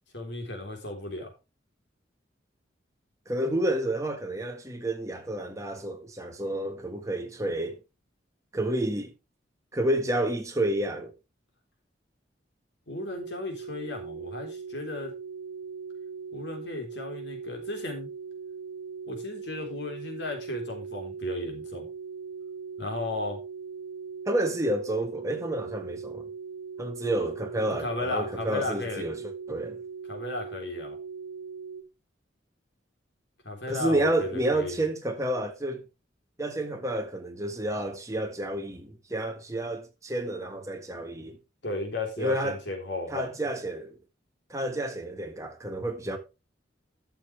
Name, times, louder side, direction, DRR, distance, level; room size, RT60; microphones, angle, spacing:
voice 1, 0.1-1.3 12.9-15.1 16.3-18.1 19.1-21.9 22.8-23.4 27.8-29.0 30.1-31.0 33.4-34.8 41.6-43.3, left 2 dB, 65° left, 3.6 m, -35 dB
voice 2, 3.3-7.8 8.5-9.1 9.7-11.1 24.3-26.3 26.8-29.8 33.7-35.8 36.4-41.4 42.2-42.6 43.1-44.0 44.5-46.2, right 1 dB, 15° right, 1.5 m, -30 dB
sound 1, 13.2-31.8, right 5 dB, 60° right, 1.1 m, -40 dB
12.5 x 6.9 x 3.3 m
head